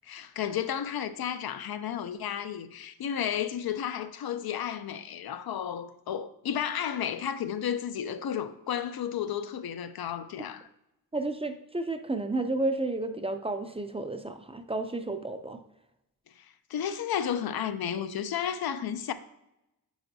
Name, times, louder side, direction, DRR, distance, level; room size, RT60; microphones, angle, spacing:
voice 1, 0.0-10.7 16.4-19.1, left 9 dB, 90° left, 0.5 m, -32 dB
voice 2, 11.1-15.6, right 2 dB, 15° right, 0.4 m, -31 dB
8.9 x 4.9 x 2.7 m
wide cardioid pair, 110°, 35 cm